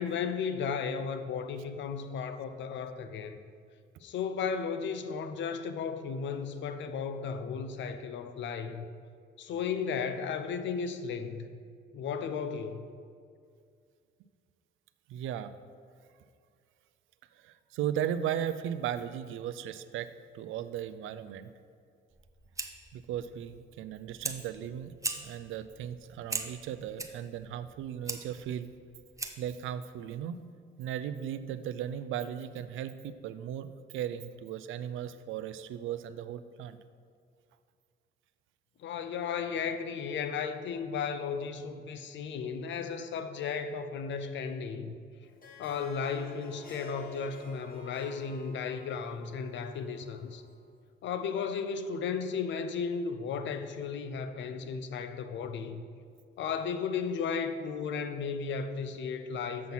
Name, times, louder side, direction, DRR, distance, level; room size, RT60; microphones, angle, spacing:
voice 1, 0.0-3.4 4.0-8.9 9.4-11.5 11.9-12.9 38.8-45.0 45.6-50.4 51.0-55.8 56.4-59.7, left 6 dB, 70° left, 9 dB, 0.6 m, -34 dB
voice 2, 15.1-15.5 17.3-21.5 22.9-28.7 29.4-30.4 30.8-36.8, right 10 dB, 80° right, 12 dB, 0.4 m, -37 dB
Fire, 22.1-29.6, right 3 dB, 15° right, 0.7 m, -41 dB
Harp, 45.2-50.7, left 1 dB, 45° left, 1.3 m, -51 dB
7.4 x 5.8 x 5.6 m, 2.2 s
cardioid pair, 90°, 20 cm